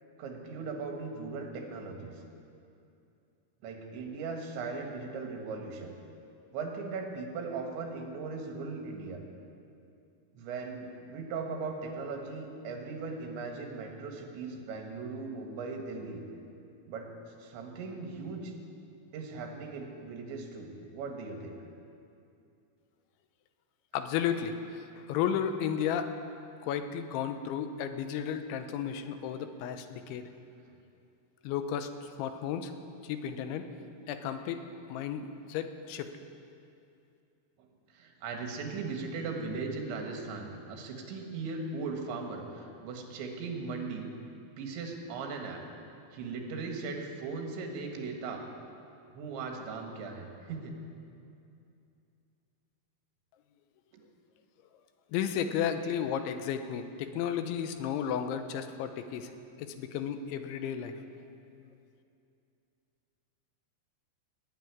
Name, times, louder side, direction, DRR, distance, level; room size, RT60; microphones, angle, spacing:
voice 1, 0.2-2.2 3.6-6.0 6.5-9.2 10.4-16.2 16.9-17.1 17.4-18.5 19.1-21.6 37.6-44.1 44.6-45.6 46.1-48.5 49.1-50.7, right 4 dB, 80° right, 2 dB, 3.9 m, -38 dB
voice 2, 23.9-26.1 26.6-30.3 31.4-32.7 33.0-33.7 34.1-34.6 34.9-36.1 55.1-59.3 59.6-61.0, left 8 dB, 90° left, 8 dB, 3.2 m, -33 dB
18.0 x 8.3 x 9.6 m, 2.6 s
omnidirectional pair, 5.3 m